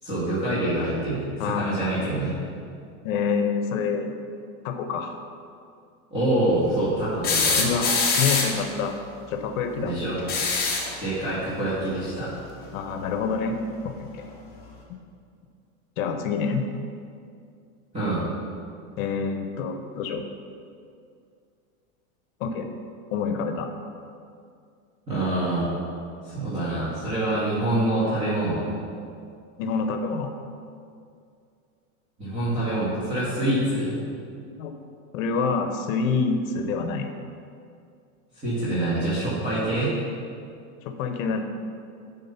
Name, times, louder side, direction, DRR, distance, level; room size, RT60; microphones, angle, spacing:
voice 1, 0.0-2.3 6.1-7.6 9.8-10.2 11.0-12.3 17.9-18.2 25.1-25.7 26.2-28.7 32.2-34.0 38.4-39.9, right 1 dB, 15° right, -13 dB, 2.2 m, -25 dB
voice 2, 1.4-1.7 3.0-4.1 4.6-5.2 7.6-7.9 8.2-8.9 9.3-9.9 12.7-13.6 13.8-14.2 14.9-15.0 16.0-16.6 19.0-20.2 22.4-22.7 23.1-23.7 29.6-30.3 34.6-34.8 35.1-37.1 40.8-41.4, left 5 dB, 65° left, 5 dB, 0.9 m, -27 dB
sound 1, 7.2-8.7 10.2-11.0 12.6-12.7 14.2-14.3, left 4 dB, 20° left, 1.1 m, -23 dB
11.0 x 3.7 x 5.7 m, 2.4 s
supercardioid pair, 160°, 43 cm